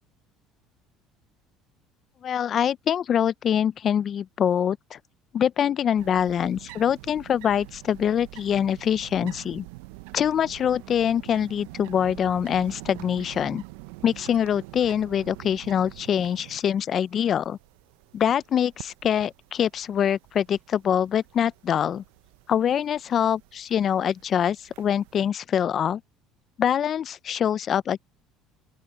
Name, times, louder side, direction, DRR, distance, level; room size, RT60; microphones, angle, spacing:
voice 1, 2.2-5.0 5.3-9.7 10.1-13.6 14.0-17.6 18.1-22.0 22.5-26.0 26.6-28.0, left 9 dB, 45° left, 0.5 m, -24 dB
sound 1, 6.0-25.3, right 21 dB, 90° right, 0.6 m, -46 dB
open air
supercardioid pair, 100°, 0 cm